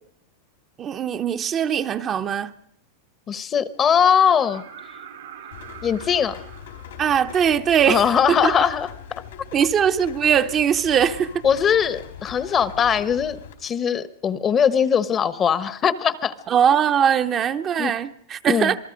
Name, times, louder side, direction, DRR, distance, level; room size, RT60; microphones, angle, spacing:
voice 1, 0.8-2.5 7.0-8.0 8.4-8.5 9.5-11.3 16.5-18.8, right 8 dB, 30° right, 8 dB, 0.8 m, -20 dB
voice 2, 3.3-4.6 5.8-6.4 7.9-9.2 11.4-13.4 13.6-16.3 17.8-17.9 18.5-18.7, left 7 dB, 25° left, 15 dB, 1.0 m, -20 dB
sound 1, 4.3-8.1 10.0-10.1, right 8 dB, 80° right, 1.8 m, -44 dB
Rain, 5.5-13.5, left 8 dB, 80° left, 4.2 m, -41 dB
27.0 x 19.0 x 5.1 m, 0.73 s
supercardioid pair, 130°, 0 cm